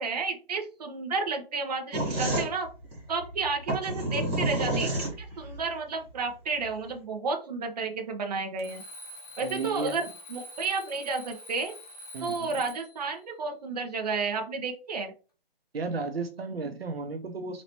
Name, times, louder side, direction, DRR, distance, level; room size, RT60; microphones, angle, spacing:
voice 1, 0.0-2.7 3.1-4.9 5.2-8.8 9.4-11.7 12.2-15.1, right 4 dB, 40° right, 3 dB, 0.9 m, -31 dB
sound 1, 1.9-5.6, right 1 dB, 20° right, 1.7 m, -29 dB
Alarm, 8.6-13.0, left 1 dB, 40° left, 1.1 m, -46 dB
voice 2, 9.4-10.0 12.1-12.5 15.7-17.6, right 4 dB, 75° right, 7 dB, 0.8 m, -34 dB
4.2 x 2.9 x 3.0 m, 0.35 s
hypercardioid pair, 160°, 30 cm